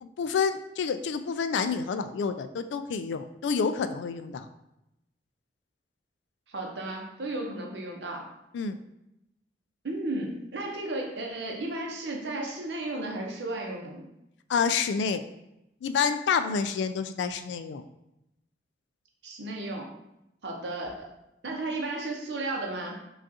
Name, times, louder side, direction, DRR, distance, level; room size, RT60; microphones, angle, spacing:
voice 1, 0.0-4.5 8.5-8.8 14.5-15.2 15.8-17.8, left 5 dB, 85° left, 10 dB, 0.3 m, -28 dB
voice 2, 6.5-8.3 9.8-14.1 19.2-19.9 20.4-21.1 21.4-23.0, right 2 dB, 80° right, 0 dB, 0.8 m, -34 dB
5.0 x 2.4 x 2.7 m, 0.87 s
head